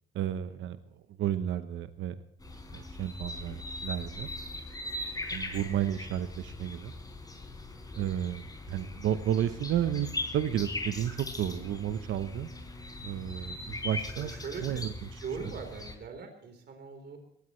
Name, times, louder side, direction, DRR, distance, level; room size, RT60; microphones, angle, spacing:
voice 1, 0.1-0.8 1.2-2.2 2.7-4.3 5.3-6.9 7.9-10.1 10.3-12.5 13.0-14.3 14.6-14.9, right 10 dB, 75° right, 10 dB, 0.9 m, -32 dB
sound 1, 2.4-16.0, left 2 dB, 20° left, 4.0 m, -40 dB
voice 2, 7.7-8.1 12.4-12.6 14.2-14.8 15.2-17.2, right 5 dB, 55° right, 5 dB, 3.9 m, -41 dB
21.0 x 16.5 x 3.2 m, 0.74 s
cardioid pair, 90°, 20 cm